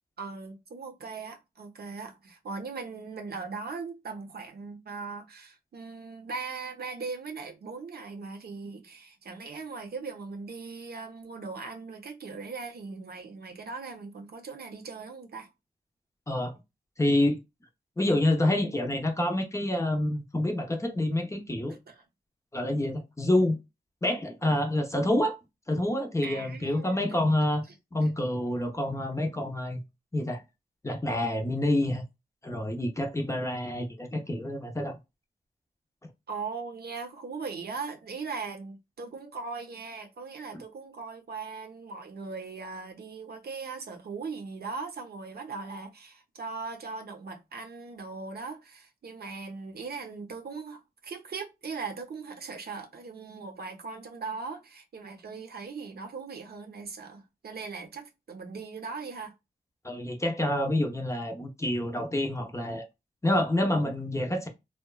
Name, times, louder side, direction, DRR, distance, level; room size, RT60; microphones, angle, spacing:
voice 1, 0.2-15.5 21.9-22.0 26.2-27.2 36.3-59.3, right 4 dB, 75° right, 0.6 m, -39 dB
voice 2, 17.0-17.4 18.0-21.8 22.5-23.6 24.0-25.4 25.7-27.6 27.9-29.8 30.1-30.4 30.8-32.0 32.4-35.0 40.5-40.6 59.8-62.8 63.2-64.5, left 1 dB, 20° left, 0.5 m, -27 dB
2.8 x 2.2 x 2.2 m
wide cardioid pair, 105°, 16 cm